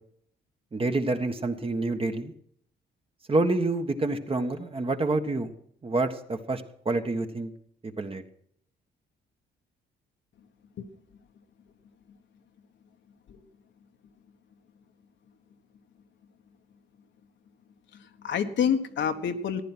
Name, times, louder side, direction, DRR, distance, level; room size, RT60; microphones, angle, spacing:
voice 1, 0.7-2.3 3.3-5.5 5.8-7.5 8.0-8.2, right 2 dB, 30° right, 6 dB, 1.5 m, -27 dB
voice 2, 17.9-19.6, left 7 dB, 65° left, 6 dB, 1.4 m, -28 dB
15.0 x 10.0 x 6.1 m, 0.66 s
cardioid pair, 90°, 20 cm